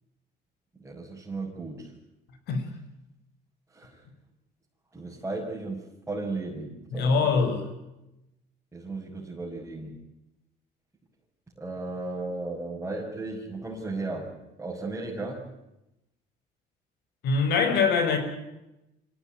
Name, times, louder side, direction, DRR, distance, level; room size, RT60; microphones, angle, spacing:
voice 1, 0.8-1.9 3.7-4.0 4.9-7.4 8.7-10.0 11.6-15.4, right 2 dB, 10° right, -4 dB, 6.1 m, -35 dB
voice 2, 6.9-7.7 17.2-18.2, left 4 dB, 75° left, 8 dB, 6.2 m, -23 dB
26.0 x 17.0 x 9.5 m, 0.91 s
cardioid pair, 110°, 17 cm